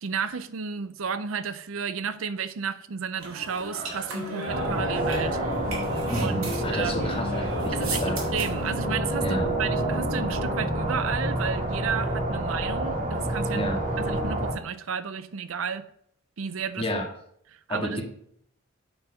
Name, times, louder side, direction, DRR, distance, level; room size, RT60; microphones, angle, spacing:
voice 1, 0.0-5.4 6.1-7.1 7.7-13.6 14.0-15.8 16.4-16.9 17.5-18.0, right 6 dB, 70° right, 0.5 m, -32 dB
sound 1, 3.2-8.7, right 2 dB, 85° right, 2.5 m, -36 dB
sound 2, 4.2-11.3, left 3 dB, 50° left, 0.4 m, -37 dB
sound 3, 4.5-14.5, right 1 dB, 40° right, 2.1 m, -28 dB
voice 2, 6.1-8.2 9.2-9.5 13.5-13.8 16.8-17.0 17.7-18.0, equal, 25° left, 1.8 m, -30 dB
8.7 x 4.4 x 5.7 m
head